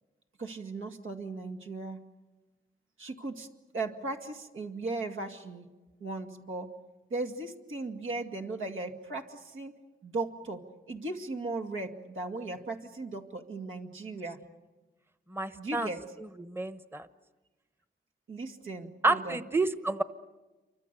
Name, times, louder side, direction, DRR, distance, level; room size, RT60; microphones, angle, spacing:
voice 1, 0.4-2.0 3.0-3.5 3.7-5.7 6.0-6.7 7.1-9.7 10.0-14.4 15.6-16.0 18.3-19.4, right 3 dB, 85° right, 3 dB, 2.3 m, -37 dB
voice 2, 15.3-15.9 16.4-17.1 19.0-20.0, right 2 dB, 10° right, 12 dB, 1.0 m, -29 dB
28.0 x 24.5 x 6.8 m, 1.2 s
wide cardioid pair, 75°, 20 cm